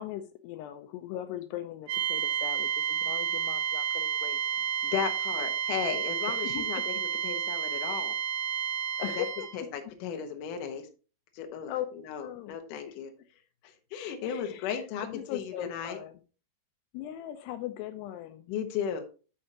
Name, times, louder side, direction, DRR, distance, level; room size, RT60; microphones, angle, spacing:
voice 1, 0.0-4.7 5.7-5.9 6.3-6.9 9.0-9.5 11.7-11.9 12.2-12.6 12.9-13.0 14.2-14.8 15.0-16.2 16.9-18.5, left 12 dB, 85° left, 9 dB, 2.7 m, -39 dB
sound 1, 1.9-9.6, right 8 dB, 70° right, 2.1 m, -31 dB
voice 2, 4.9-8.2 9.1-9.3 9.5-10.9 11.3-13.1 13.6-16.0 18.5-19.1, left 8 dB, 65° left, 5 dB, 2.4 m, -35 dB
11.0 x 5.7 x 2.8 m, 0.35 s
omnidirectional pair, 4.9 m